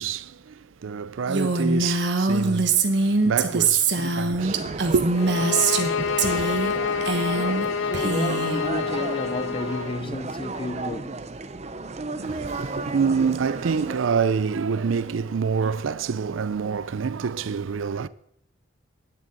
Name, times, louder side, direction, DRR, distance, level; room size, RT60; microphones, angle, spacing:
voice 1, 0.0-5.1 12.1-18.1, right 6 dB, 85° right, 0.5 m, -27 dB
Female speech woman speaking, 1.3-5.9 6.2-6.7 7.0-7.7 7.9-8.6, right 3 dB, 60° right, 1.3 m, -23 dB
sound 1, 4.4-14.0, right 3 dB, 35° right, 0.6 m, -34 dB
sound 2, 5.1-10.0, left 6 dB, 75° left, 0.5 m, -27 dB
voice 2, 7.8-11.2, left 1 dB, 25° left, 0.7 m, -32 dB
10.0 x 7.7 x 7.7 m
head